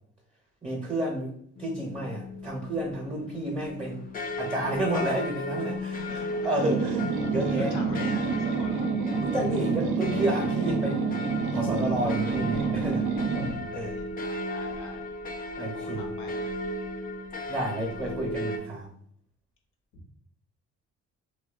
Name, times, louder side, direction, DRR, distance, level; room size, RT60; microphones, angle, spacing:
voice 1, 0.6-1.3 1.6-4.0 4.4-6.0 6.4-7.7 9.2-13.1 13.4-14.0 15.6-16.0 17.5-18.9, right 1 dB, 20° right, -1 dB, 0.5 m, -31 dB
sound 1, 1.6-18.6, left 1 dB, 30° left, 0.4 m, -36 dB
voice 2, 6.0-6.5 7.4-8.9 13.6-15.0 15.6-16.5 19.9-20.0, left 3 dB, 90° left, 1 dB, 0.7 m, -44 dB
sound 2, 6.6-13.6, right 5 dB, 80° right, 0.5 m, -28 dB
2.6 x 2.1 x 2.3 m, 0.65 s
cardioid pair, 90°, 30 cm